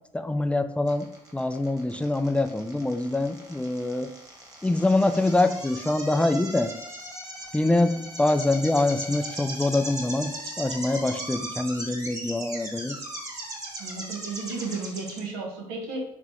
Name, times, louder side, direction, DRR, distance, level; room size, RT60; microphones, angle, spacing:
voice 1, 0.1-1.1 1.3-4.1 4.6-6.7 7.5-10.3 10.6-13.0, left 2 dB, 5° left, 8 dB, 0.4 m, -24 dB
sound 1, 0.9-15.2, right 1 dB, 20° right, 1.5 m, -38 dB
voice 2, 13.8-16.1, right 3 dB, 80° right, 0 dB, 1.1 m, -33 dB
4.0 x 3.6 x 3.0 m, 0.82 s
hypercardioid pair, 60°, 17 cm